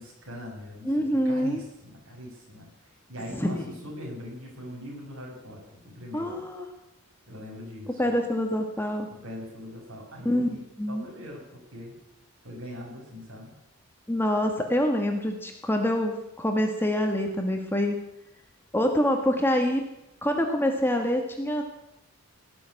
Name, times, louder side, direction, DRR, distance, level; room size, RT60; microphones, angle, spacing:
voice 1, 0.0-6.4 7.3-8.0 9.1-10.6 10.9-12.0 12.4-13.5, equal, 60° right, -1 dB, 6.1 m, -41 dB
voice 2, 0.8-1.6 3.4-3.7 6.1-6.7 8.0-9.1 10.2-10.5 10.8-11.0 14.1-18.0 18.7-19.8 20.2-21.6, equal, 10° left, 3 dB, 1.4 m, -25 dB
17.5 x 7.0 x 9.7 m, 0.89 s
head